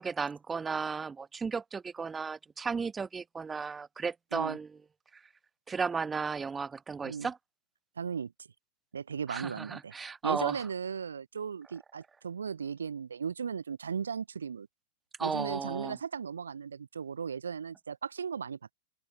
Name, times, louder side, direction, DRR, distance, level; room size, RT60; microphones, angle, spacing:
voice 1, 0.0-4.8 5.7-7.4 9.3-10.6 15.2-16.0, right 5 dB, 15° right, 3.0 m, -34 dB
voice 2, 8.0-8.3 8.9-9.9 10.2-14.7 15.2-18.7, right 6 dB, 70° right, 2.2 m, -36 dB
figure-of-eight pair, 90°, 0 cm